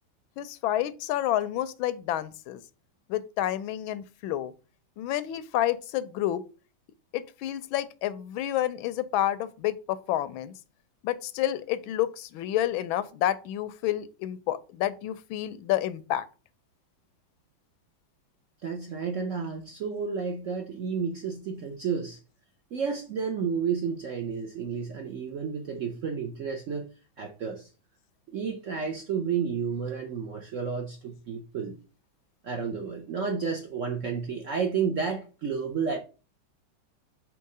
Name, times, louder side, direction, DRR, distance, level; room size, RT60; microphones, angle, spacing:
voice 1, 0.4-2.6 3.1-4.5 5.0-6.4 7.1-10.5 11.0-16.2, left 12 dB, 85° left, 1.4 m, -29 dB
voice 2, 18.6-22.2 22.7-26.9 27.2-27.7 28.3-31.8 32.4-36.0, right 6 dB, 60° right, 0.8 m, -31 dB
4.6 x 4.1 x 5.3 m
omnidirectional pair, 2.2 m